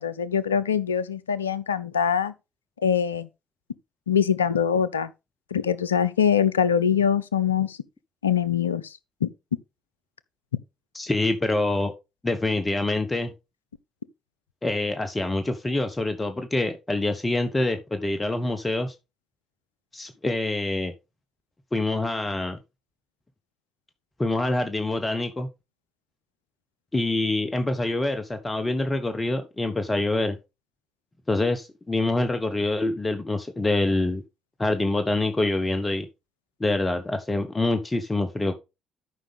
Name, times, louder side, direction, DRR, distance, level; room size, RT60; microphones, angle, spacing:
voice 1, 0.0-2.3 2.8-3.3 4.1-5.1 5.5-7.8 8.2-8.9 9.2-9.3, left 7 dB, 85° left, 0.4 m, -23 dB
voice 2, 10.9-11.9 12.2-13.3 14.6-18.9 19.9-20.9 21.7-22.6 24.2-25.5 26.9-30.4 31.3-34.2 34.6-36.1 36.6-38.5, left 2 dB, 20° left, 1.2 m, -25 dB
13.0 x 5.4 x 3.5 m
figure-of-eight pair, 45°, 0 cm